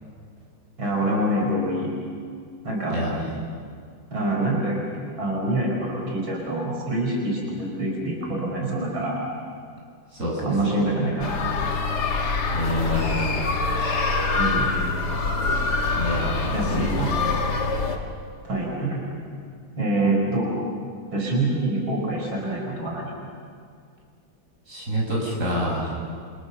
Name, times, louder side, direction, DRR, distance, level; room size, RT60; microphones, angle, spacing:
voice 1, 0.8-1.9 2.6-3.0 4.1-4.8 5.2-9.3 10.4-11.4 14.3-14.7 16.5-17.1 18.4-19.0 19.8-20.6 21.1-23.1, right 1 dB, 80° right, -2 dB, 5.5 m, -25 dB
voice 2, 2.9-3.3 10.1-10.8 12.5-13.4 15.9-17.2 24.7-25.9, equal, 40° right, -3 dB, 6.7 m, -27 dB
sound 1, 11.2-18.0, left 3 dB, 55° left, 2.4 m, -25 dB
28.5 x 26.5 x 6.9 m, 2.2 s
omnidirectional pair, 2.2 m